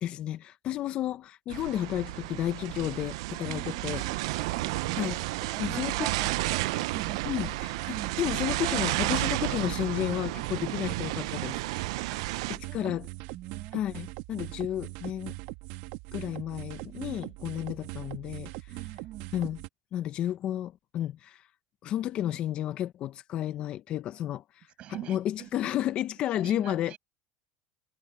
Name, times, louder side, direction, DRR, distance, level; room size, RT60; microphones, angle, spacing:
voice 1, 0.0-4.0 5.0-5.2 5.6-5.9 7.3-7.5 7.9-11.6 12.7-13.1 13.7-15.4 16.1-18.7 19.3-19.6 19.9-21.5 21.8-24.7 25.1-26.9, left 12 dB, 40° left, 0.6 m, -32 dB
sound 1, 1.5-12.6, right 19 dB, 85° right, 0.6 m, -32 dB
voice 2, 2.8-3.1 3.4-5.1 5.5-8.2 12.1-13.0 13.3-13.8 16.8-17.3 18.7-19.3 24.8-25.6 26.3-27.0, right 13 dB, 40° right, 6.3 m, -44 dB
sound 2, 3.4-19.7, right 20 dB, 70° right, 2.2 m, -41 dB
supercardioid pair, 145°, 3 cm